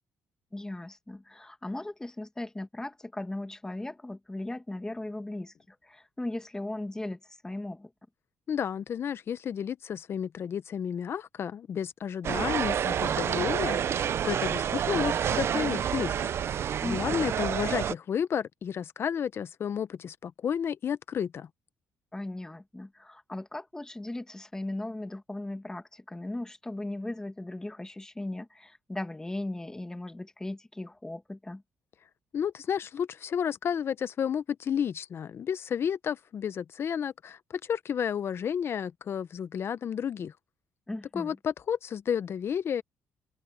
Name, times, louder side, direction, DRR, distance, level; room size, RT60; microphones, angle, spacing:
voice 1, 0.5-7.9 16.8-17.3 22.1-31.6 40.9-41.4, left 1 dB, 10° left, 1.7 m, -38 dB
voice 2, 8.5-16.1 16.8-21.5 32.3-40.3 41.1-42.8, left 8 dB, 50° left, 0.7 m, -31 dB
sound 1, 12.2-17.9, right 9 dB, 50° right, 0.5 m, -28 dB
open air
cardioid pair, 105°, 5 cm